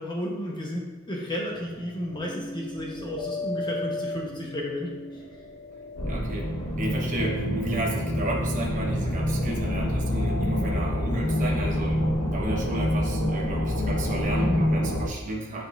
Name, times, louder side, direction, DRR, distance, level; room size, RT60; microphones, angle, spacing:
voice 1, 0.0-4.9 14.4-14.7, left 1 dB, 20° left, -2 dB, 1.0 m, -32 dB
sound 1, 1.5-11.9, left 1 dB, 70° left, 1.9 m, -38 dB
sound 2, 6.0-15.1, left 1 dB, 90° left, 1.2 m, -26 dB
voice 2, 6.1-6.5 6.8-12.1 12.3-15.7, right 1 dB, 35° right, -3 dB, 1.1 m, -33 dB
9.0 x 5.2 x 2.5 m, 1.2 s
head